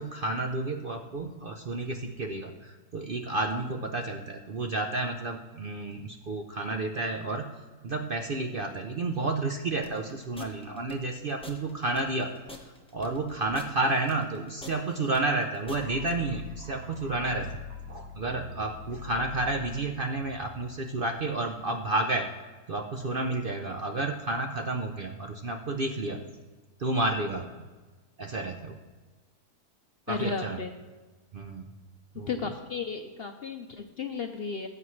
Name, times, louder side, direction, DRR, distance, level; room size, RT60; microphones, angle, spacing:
voice 1, 0.0-7.5 7.8-12.3 12.9-17.6 17.9-22.3 22.7-26.2 26.8-27.5 28.2-28.8 30.1-30.6 31.3-31.6 32.2-32.3, right 2 dB, 55° right, 4 dB, 0.6 m, -31 dB
sound 1, 9.8-16.1, left 2 dB, 5° left, 1.0 m, -46 dB
sound 2, 15.7-21.6, left 5 dB, 80° right, 1.3 m, -44 dB
voice 2, 30.1-30.7 32.3-34.7, left 5 dB, 55° left, 5 dB, 0.7 m, -34 dB
18.5 x 7.8 x 3.1 m, 1.3 s
omnidirectional pair, 1.6 m